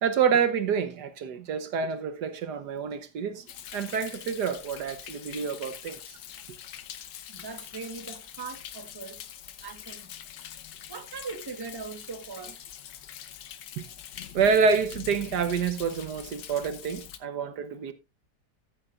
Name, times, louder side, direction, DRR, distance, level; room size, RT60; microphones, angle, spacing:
voice 1, 0.0-3.5 3.7-6.2 13.8-13.9 14.3-17.9, right 6 dB, 70° right, 1.5 m, -27 dB
Thunder, 3.5-17.2, left 10 dB, 80° left, 1.6 m, -44 dB
voice 2, 7.3-9.2 9.6-10.1 10.9-12.6, right 4 dB, 15° right, 1.0 m, -40 dB
14.0 x 9.9 x 2.4 m
omnidirectional pair, 1.9 m